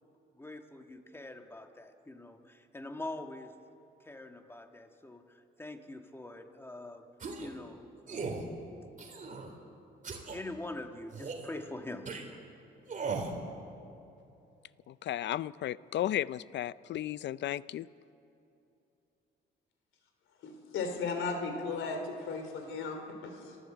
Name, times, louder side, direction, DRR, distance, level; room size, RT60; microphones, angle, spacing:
voice 1, 0.4-3.6 4.0-7.1 7.4-8.4 10.3-12.4, left 2 dB, 10° left, 5 dB, 1.8 m, -44 dB
sound 1, 7.2-7.5 8.1-8.4 9.0-9.5 10.0-10.4 11.1-11.5 12.1-12.2 12.9-13.3, right 4 dB, 40° right, 3.5 m, -37 dB
voice 2, 14.9-17.9, left 12 dB, 65° left, 19 dB, 0.5 m, -34 dB
voice 3, 20.4-23.6, left 4 dB, 80° left, 5 dB, 3.6 m, -36 dB
27.0 x 14.0 x 8.0 m, 2.8 s
cardioid pair, 90°, 20 cm